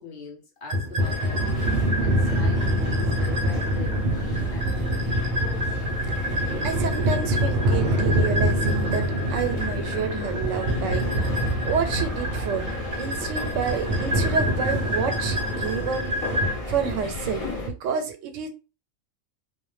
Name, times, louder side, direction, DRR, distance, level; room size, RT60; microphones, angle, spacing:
voice 1, 0.0-5.8, left 3 dB, 55° left, 1.0 m, -42 dB
sound 1, 0.7-16.5, equal, 50° right, 0.6 m, -25 dB
sound 2, 1.0-17.7, left 2 dB, 40° left, 0.5 m, -34 dB
voice 2, 6.2-16.1 16.7-18.5, right 6 dB, 90° right, 1.0 m, -29 dB
2.4 x 2.1 x 3.1 m
omnidirectional pair, 1.3 m